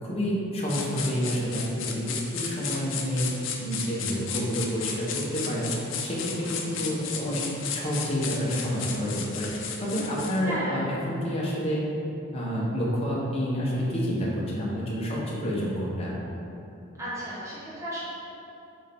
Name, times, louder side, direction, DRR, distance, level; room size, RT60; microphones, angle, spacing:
voice 1, 0.0-5.7 6.0-7.4 7.7-9.5 9.8-11.8 12.3-16.2, equal, 30° left, -6 dB, 1.1 m, -29 dB
sound 1, 0.7-10.4, left 6 dB, 70° left, 0.6 m, -34 dB
voice 2, 4.0-4.3 6.5-6.9 10.4-10.8 17.0-18.0, equal, 15° right, -10 dB, 1.2 m, -35 dB
6.4 x 4.4 x 3.6 m, 2.9 s
head